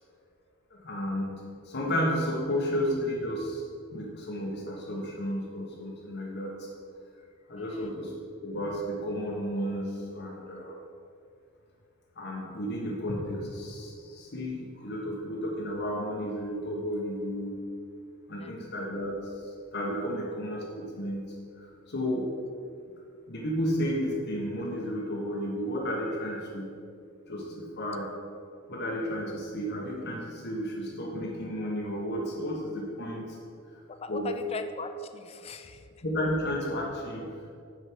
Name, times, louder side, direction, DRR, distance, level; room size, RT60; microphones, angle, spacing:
voice 1, 0.7-1.3 1.6-3.6 3.9-6.7 7.5-8.1 8.4-10.7 12.2-17.6 18.3-19.3 19.7-21.2 21.6-22.3 23.3-26.7 27.3-28.1 28.7-33.4 34.1-34.3 36.0-37.3, equal, 55° left, -2 dB, 1.2 m, -32 dB
voice 2, 7.6-7.9 18.4-18.5 33.9-35.9, left 4 dB, 30° left, 7 dB, 0.4 m, -40 dB
8.7 x 4.8 x 6.2 m, 2.4 s
head